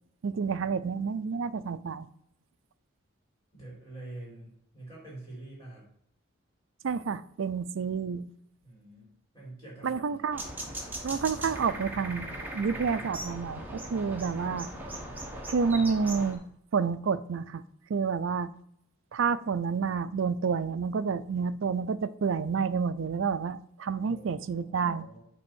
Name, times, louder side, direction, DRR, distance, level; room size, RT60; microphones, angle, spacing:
voice 1, 0.2-2.1 6.8-8.3 9.8-10.4 11.0-12.3 12.5-14.7 15.5-16.4 16.7-17.6 17.9-18.5 19.1-25.1, right 5 dB, 70° right, 0.4 m, -29 dB
voice 2, 3.5-5.8 8.6-10.3 24.0-25.2, right 2 dB, 15° left, 3.7 m, -46 dB
sound 1, 10.3-16.3, right 1 dB, 10° right, 1.2 m, -39 dB
8.9 x 3.5 x 6.1 m
head